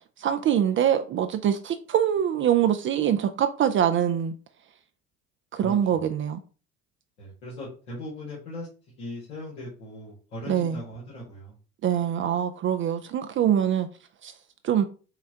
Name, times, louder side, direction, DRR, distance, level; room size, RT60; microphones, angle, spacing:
voice 1, 0.2-4.3 5.5-6.4 10.5-10.8 11.8-13.9 14.2-14.3 14.6-14.9, right 9 dB, 35° right, 0.4 m, -24 dB
voice 2, 5.6-6.0 7.2-8.7 9.0-11.5, left 1 dB, 85° left, 1.6 m, -39 dB
5.6 x 2.2 x 2.8 m
hypercardioid pair, 70°, 35 cm